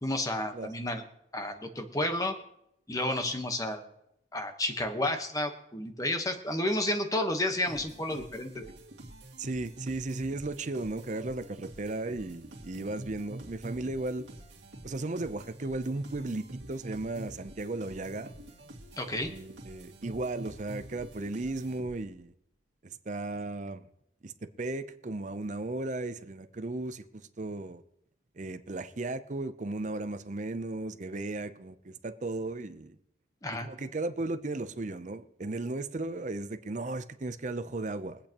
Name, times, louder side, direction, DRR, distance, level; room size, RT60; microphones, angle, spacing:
voice 1, 0.0-1.0 1.3-2.4 2.9-3.8 4.3-8.7 19.0-19.3 33.4-33.7, left 1 dB, 20° left, 1.1 m, -31 dB
voice 2, 0.5-0.9 9.4-14.2 14.8-18.3 19.2-22.3 22.8-23.9 24.2-27.0 27.4-27.8 28.4-33.0 33.6-38.2, right 2 dB, 40° right, 0.6 m, -35 dB
sound 1, 7.7-22.2, right 1 dB, 70° right, 2.3 m, -47 dB
23.5 x 8.5 x 3.0 m
head